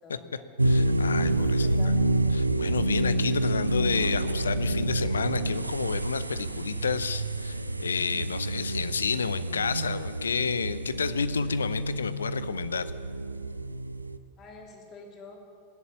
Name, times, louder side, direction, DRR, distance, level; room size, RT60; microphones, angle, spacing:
voice 1, 0.0-0.5 1.4-2.0 14.4-15.4, left 3 dB, 30° left, 1 dB, 3.3 m, -47 dB
voice 2, 0.6-1.7 2.3-12.9, left 6 dB, 70° left, 15 dB, 0.7 m, -30 dB
sound 1, 0.6-14.2, right 1 dB, 85° right, 0.5 m, -28 dB
20.0 x 8.3 x 8.6 m, 2.2 s
figure-of-eight pair, 90°, 0 cm